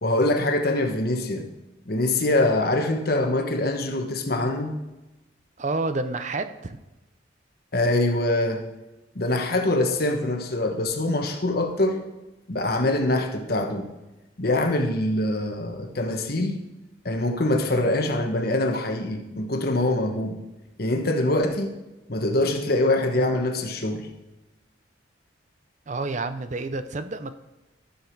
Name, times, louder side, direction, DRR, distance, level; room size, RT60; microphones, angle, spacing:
voice 1, 0.0-1.5 1.9-4.8 7.7-8.6 9.1-12.1 12.5-13.9 14.4-16.6 17.0-20.4 20.8-21.8 22.1-24.1, left 1 dB, 55° left, 4 dB, 1.2 m, -24 dB
voice 2, 5.6-6.8 25.9-27.3, right 3 dB, 40° right, 11 dB, 0.6 m, -29 dB
13.0 x 7.1 x 4.6 m, 1.0 s
head